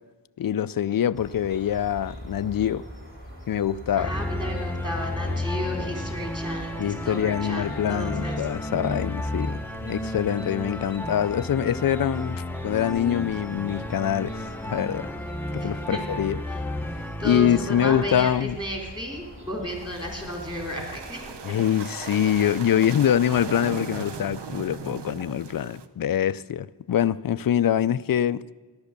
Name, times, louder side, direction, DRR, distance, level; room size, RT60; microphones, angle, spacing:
voice 1, 0.4-2.8 3.5-4.1 6.8-15.1 15.5-16.4 17.2-18.6 21.4-28.4, left 10 dB, 55° left, 0.5 m, -24 dB
sound 1, 1.1-21.1, equal, 30° right, 2.8 m, -42 dB
sound 2, 3.9-18.4, left 1 dB, 5° left, 0.6 m, -33 dB
voice 2, 4.0-8.6 15.6-16.0 17.2-21.5, left 1 dB, 10° right, 3.7 m, -33 dB
sound 3, 19.7-25.9, right 5 dB, 70° right, 0.8 m, -38 dB
14.0 x 11.5 x 6.7 m
wide cardioid pair, 80°, 42 cm